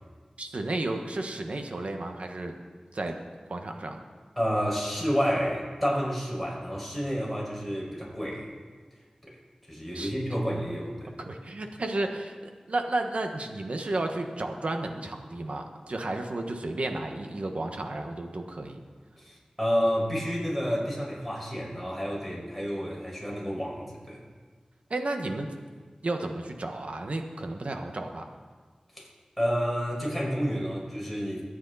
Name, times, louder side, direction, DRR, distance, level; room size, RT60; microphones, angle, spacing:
voice 1, 0.4-2.5 2.9-3.2 3.5-4.0 9.9-10.1 11.2-12.4 12.7-18.8 24.9-25.5 26.0-28.3, right 2 dB, 70° right, 4 dB, 1.4 m, -32 dB
voice 2, 4.4-8.5 9.2-9.3 9.7-11.1 19.2-24.2 28.9-29.1 29.4-31.4, equal, ahead, -3 dB, 5.6 m, -30 dB
23.5 x 9.6 x 4.2 m, 1.5 s
wide cardioid pair, 55°, 2 cm